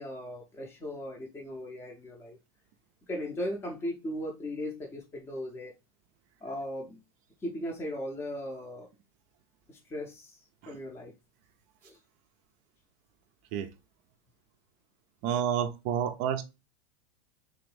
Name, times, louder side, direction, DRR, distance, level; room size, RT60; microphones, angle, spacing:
voice 1, 0.0-2.4 3.1-5.7 6.4-7.0 7.4-8.9 9.7-11.1 11.8-12.0, left 1 dB, 15° left, 0.5 m, -37 dB
voice 2, 15.2-16.4, right 9 dB, 45° right, 0.4 m, -29 dB
3.4 x 2.6 x 3.2 m
supercardioid pair, 145°, 18 cm